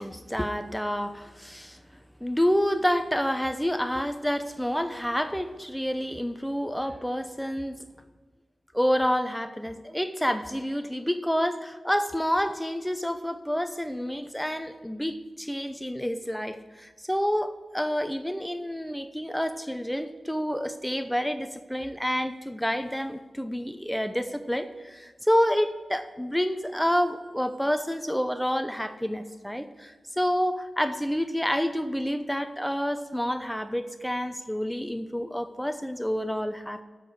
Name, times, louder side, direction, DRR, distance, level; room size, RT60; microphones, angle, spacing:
voice 1, 0.0-1.8 2.2-7.8 8.7-36.8, equal, 5° left, 9 dB, 0.7 m, -28 dB
7.6 x 6.6 x 7.8 m, 1.3 s
wide cardioid pair, 95°, 0 cm